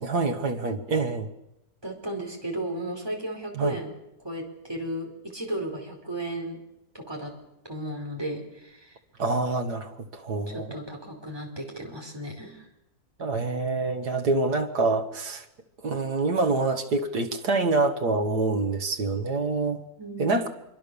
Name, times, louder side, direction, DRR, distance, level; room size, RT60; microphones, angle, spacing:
voice 1, 0.0-1.3 3.6-3.8 9.2-10.8 13.2-15.4 15.8-19.8 20.2-20.5, right 3 dB, 90° right, 4 dB, 2.3 m, -26 dB
voice 2, 1.8-3.9 4.2-6.6 6.9-7.3 7.6-9.0 10.5-12.7 20.0-20.5, right 1 dB, 15° right, 1 dB, 4.9 m, -34 dB
25.5 x 24.0 x 7.1 m, 0.91 s
omnidirectional pair, 1.7 m